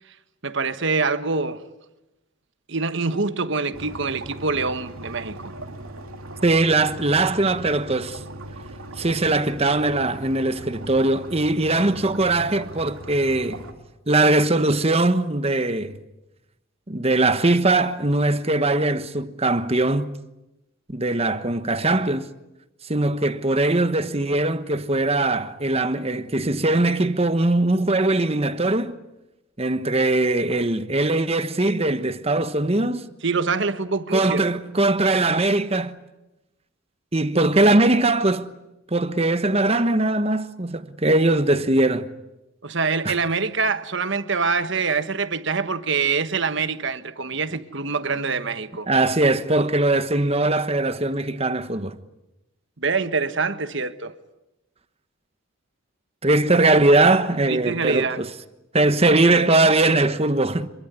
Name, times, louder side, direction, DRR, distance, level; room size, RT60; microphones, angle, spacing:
voice 1, 0.4-1.6 2.7-5.5 33.2-34.4 42.6-48.9 52.8-54.1 57.5-58.2, right 4 dB, 60° right, 1.4 m, -25 dB
sound 1, 3.7-13.7, right 1 dB, 80° right, 2.9 m, -39 dB
voice 2, 6.4-8.2 9.0-13.6 14.1-16.0 16.9-20.2 20.9-22.3 22.9-29.0 29.6-33.1 34.1-36.0 37.1-38.5 38.9-42.1 43.0-43.1 48.9-52.0 56.2-58.3 58.7-60.7, right 2 dB, 30° right, 1.2 m, -20 dB
26.5 x 23.0 x 9.6 m
head